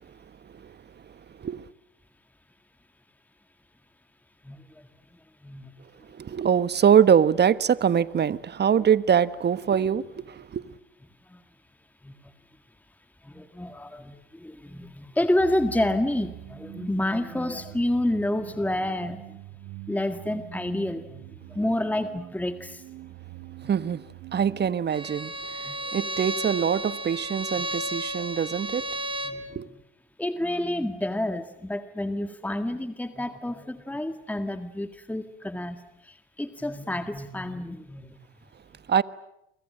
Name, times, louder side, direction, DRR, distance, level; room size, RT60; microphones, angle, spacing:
voice 1, 6.1-10.6 23.6-24.0 24.3-28.8 29.5-29.7 38.9-39.0, right 8 dB, 35° right, 1.2 m, -23 dB
voice 2, 13.2-19.2 19.9-21.2 21.5-22.8 25.7-25.8 28.2-28.3 29.2-29.4 30.2-35.8 36.1-38.2, left 1 dB, 5° left, 1.9 m, -29 dB
sound 1, 15.4-24.7, right 14 dB, 65° right, 1.7 m, -45 dB
Bowed string instrument, 24.9-29.5, right 1 dB, 15° right, 3.7 m, -33 dB
29.5 x 24.5 x 7.8 m
hypercardioid pair, 75°, 31 cm